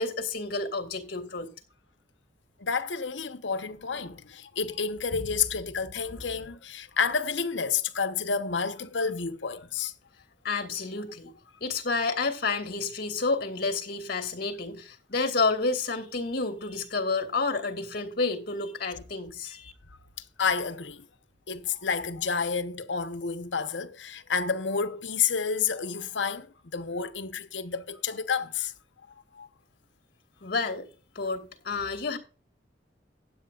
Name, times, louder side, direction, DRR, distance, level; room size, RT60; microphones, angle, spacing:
voice 1, 0.0-1.5 10.4-11.3 11.6-19.7 30.4-30.9 31.1-32.2, left 3 dB, 55° left, 2.6 m, -30 dB
voice 2, 2.6-9.9 20.4-21.1 21.5-28.7 29.4-29.5, left 6 dB, 80° left, 1.1 m, -30 dB
15.5 x 10.0 x 2.5 m
head